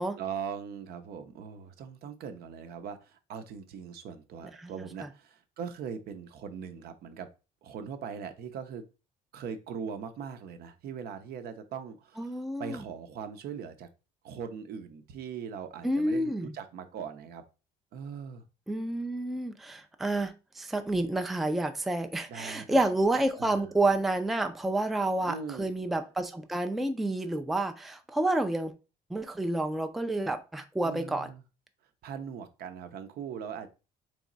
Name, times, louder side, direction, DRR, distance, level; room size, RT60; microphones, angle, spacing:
voice 1, 0.0-7.3 7.6-8.9 9.3-13.9 14.2-17.4 17.9-18.5 22.3-22.8 23.4-23.7 25.2-25.7 30.8-31.4 32.0-33.7, right 7 dB, 65° right, 0.7 m, -40 dB
voice 2, 12.2-12.8 15.8-16.5 18.7-28.7 29.1-31.3, right 2 dB, ahead, 0.4 m, -29 dB
3.4 x 3.1 x 3.8 m
cardioid pair, 110°, 17 cm